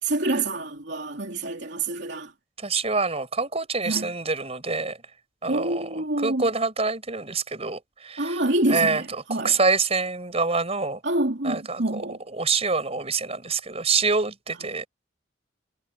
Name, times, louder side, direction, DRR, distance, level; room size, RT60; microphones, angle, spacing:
voice 1, 0.0-2.3 3.8-4.1 5.5-6.4 8.2-9.5 11.0-12.2, right 2 dB, 65° right, 3.3 m, -27 dB
voice 2, 2.6-5.0 5.4-8.4 8.7-11.0 11.4-12.0 12.3-14.9, right 4 dB, 35° right, 5.5 m, -26 dB
head